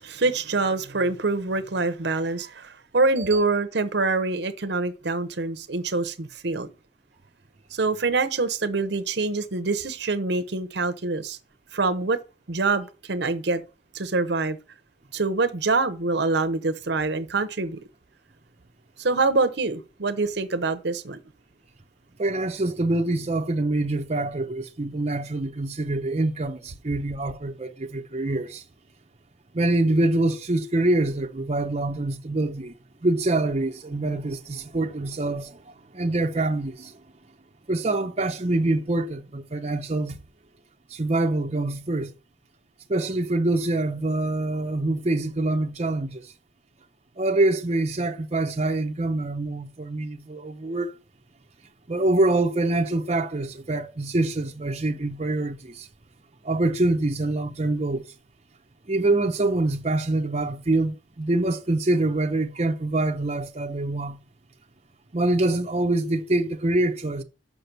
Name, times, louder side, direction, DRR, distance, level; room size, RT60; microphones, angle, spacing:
voice 1, 0.0-6.7 7.7-11.4 11.7-12.2 12.5-13.6 13.9-14.6 15.1-17.8 19.0-21.2, right 3 dB, 65° right, 0.9 m, -25 dB
voice 2, 22.2-28.6 29.5-32.7 33.0-37.0 37.7-40.2 40.9-42.1 42.9-46.3 47.2-50.9 51.9-55.9 56.4-58.1 58.9-64.2 65.1-67.2, right 2 dB, 35° right, 0.7 m, -25 dB
6.0 x 5.8 x 6.8 m
head